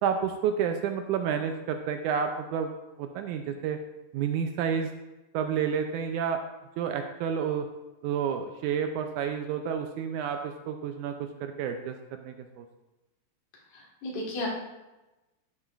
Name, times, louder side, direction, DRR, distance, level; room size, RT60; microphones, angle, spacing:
voice 1, 0.0-2.7 3.0-3.8 4.1-4.9 5.3-6.4 6.8-7.7 8.0-12.7, right 7 dB, 80° right, 6 dB, 1.9 m, -30 dB
voice 2, 13.7-14.5, left 1 dB, 75° left, -2 dB, 3.4 m, -34 dB
12.0 x 8.4 x 2.5 m, 1.0 s
omnidirectional pair, 3.8 m